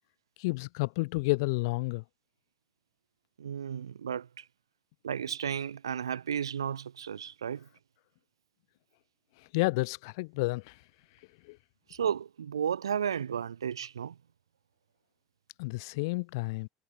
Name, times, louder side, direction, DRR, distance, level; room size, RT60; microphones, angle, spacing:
voice 1, 0.4-2.0 9.4-10.8 11.4-11.6 15.6-16.7, left 25 dB, 65° left, 1.3 m, -31 dB
voice 2, 3.4-4.4 5.0-7.7 11.9-14.2, right 8 dB, 80° right, 6.0 m, -33 dB
figure-of-eight pair, 70°, 2 cm